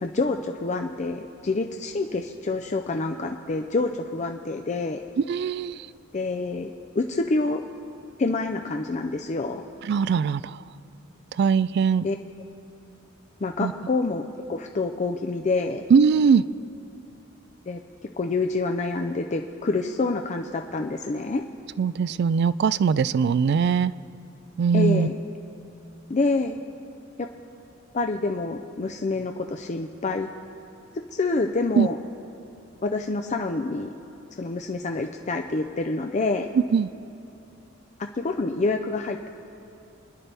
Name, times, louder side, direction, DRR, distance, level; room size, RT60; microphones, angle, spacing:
voice 1, 0.0-5.0 6.1-7.6 8.2-9.6 12.0-12.2 13.4-14.2 14.5-15.9 17.7-17.8 18.2-21.4 24.7-25.2 26.1-26.6 27.2-27.3 27.9-30.3 31.1-32.0 32.8-33.9 34.4-36.5 38.2-39.3, left 3 dB, 35° left, 4 dB, 0.5 m, -27 dB
voice 2, 5.3-5.8 9.9-10.4 11.4-12.0 13.6-13.7 15.9-16.4 21.8-23.9 24.6-25.1 31.8-31.9 36.7-36.9, right 6 dB, 55° right, 18 dB, 0.3 m, -20 dB
27.5 x 10.5 x 3.4 m, 2.6 s
head